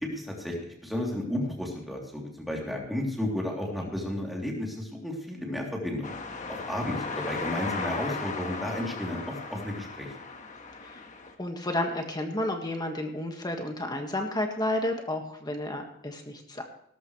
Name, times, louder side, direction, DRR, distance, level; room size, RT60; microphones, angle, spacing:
voice 1, 0.0-6.1 6.5-10.1, left 1 dB, ahead, -2 dB, 3.2 m, -33 dB
sound 1, 6.0-11.3, left 3 dB, 40° left, 1.5 m, -36 dB
voice 2, 11.4-16.6, left 1 dB, 20° left, 3 dB, 1.8 m, -31 dB
18.0 x 13.5 x 3.3 m, 0.72 s
head